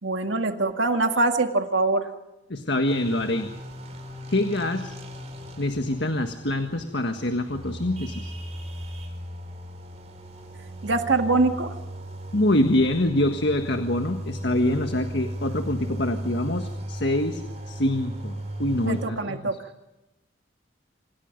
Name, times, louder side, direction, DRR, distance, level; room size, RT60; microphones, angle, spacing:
voice 1, 0.0-2.0 10.8-11.8 18.9-19.5, right 3 dB, 80° right, 5 dB, 2.1 m, -23 dB
voice 2, 2.5-3.5 4.3-4.9 5.6-8.3 12.3-17.4 17.7-19.6, left 1 dB, 65° left, 6 dB, 1.6 m, -25 dB
sound 1, 2.9-19.1, right 1 dB, 35° right, 5.3 m, -37 dB
28.0 x 26.5 x 5.4 m, 0.96 s
head